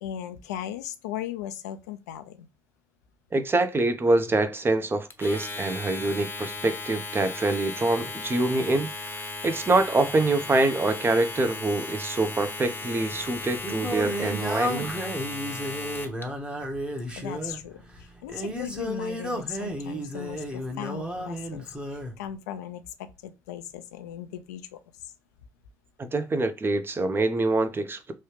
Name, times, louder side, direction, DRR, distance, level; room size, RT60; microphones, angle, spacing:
voice 1, 0.0-2.5 17.1-24.8, left 10 dB, 85° left, 0.4 m, -37 dB
voice 2, 3.3-15.0 26.0-28.1, right 2 dB, 25° right, 0.6 m, -25 dB
Domestic sounds home sounds, 5.1-16.2, left 3 dB, 25° left, 0.8 m, -36 dB
Singing, 13.1-22.2, equal, 10° right, 0.9 m, -33 dB
3.1 x 2.3 x 3.1 m
hypercardioid pair, 60°, 9 cm